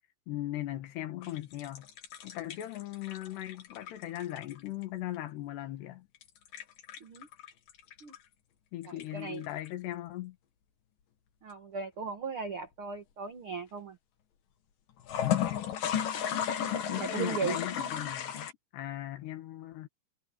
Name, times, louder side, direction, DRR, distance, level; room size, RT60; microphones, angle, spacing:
voice 1, 0.3-1.9 2.2-6.1 8.7-10.4 15.2-15.6 16.9-18.5 18.7-19.9, left 14 dB, 75° left, 3.6 m, -38 dB
sound 1, 1.2-4.8 6.2-8.2 8.8-9.7 15.0-18.5, left 9 dB, 60° left, 3.3 m, -34 dB
voice 2, 9.1-9.4 11.4-14.0 16.9-17.6, right 5 dB, 75° right, 1.2 m, -37 dB
omnidirectional pair, 4.9 m